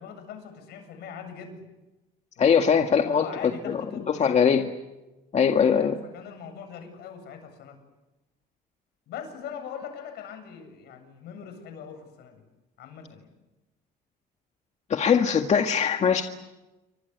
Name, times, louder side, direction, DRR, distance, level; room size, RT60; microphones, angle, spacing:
voice 1, 0.0-1.6 2.4-4.4 5.7-7.8 9.1-12.4 12.8-13.3, left 7 dB, 75° left, 7 dB, 8.0 m, -41 dB
voice 2, 2.4-3.8 4.2-4.7 5.3-5.9 14.9-16.2, left 7 dB, 40° left, 5 dB, 1.9 m, -21 dB
29.0 x 25.0 x 8.3 m, 1.0 s
cardioid pair, 110°, 17 cm